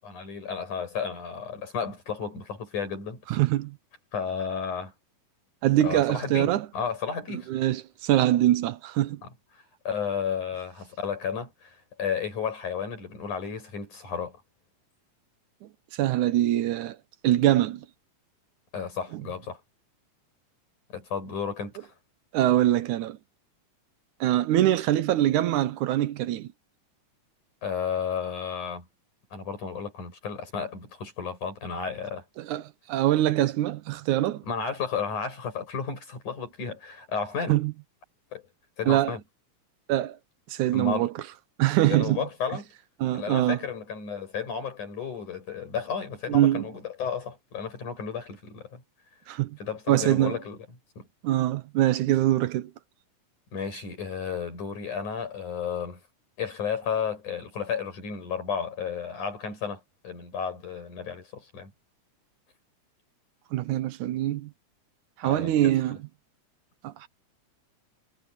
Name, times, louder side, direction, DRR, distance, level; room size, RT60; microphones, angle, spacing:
voice 1, 0.0-3.2 4.1-4.9 5.8-7.5 9.2-9.3 9.8-14.4 18.7-19.6 20.9-21.9 27.6-28.8 29.3-32.2 34.4-37.6 38.3-38.4 38.8-39.2 40.7-41.1 41.9-42.6 43.1-48.8 49.6-50.7 51.0-51.1 53.5-56.0 56.4-61.7 65.2-66.0, left 6 dB, 70° left, 8.1 m, -33 dB
voice 2, 3.3-3.8 5.6-6.7 7.5-9.2 16.0-17.0 17.2-17.9 19.1-19.2 22.3-23.2 24.2-26.5 32.4-34.4 37.5-37.7 38.9-39.1 39.9-40.2 40.5-41.1 41.6-42.2 43.0-43.6 46.3-46.7 49.3-49.6 49.9-50.4 51.2-52.7 63.5-64.5 65.2-66.0 66.8-67.1, right 13 dB, 75° right, 2.3 m, -23 dB
omnidirectional pair, 3.6 m